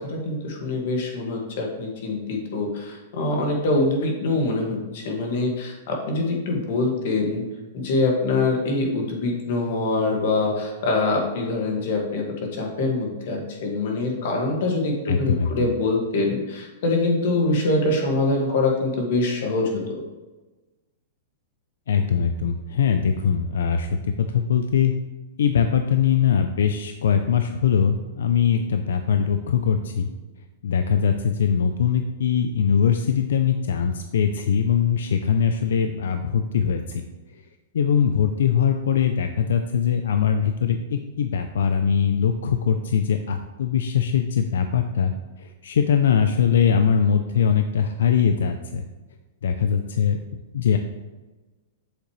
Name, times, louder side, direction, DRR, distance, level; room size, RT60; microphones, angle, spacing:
voice 1, 0.0-7.4 7.7-12.2 12.5-19.8, left 2 dB, 55° left, 1 dB, 1.9 m, -24 dB
voice 2, 15.1-15.5 21.9-23.9 24.2-24.9 25.4-30.1 30.6-37.0 37.7-45.1 45.4-48.8 49.4-50.2 50.5-50.8, left 7 dB, 90° left, 7 dB, 0.5 m, -21 dB
8.0 x 6.6 x 3.3 m, 1.2 s
supercardioid pair, 165°, 0 cm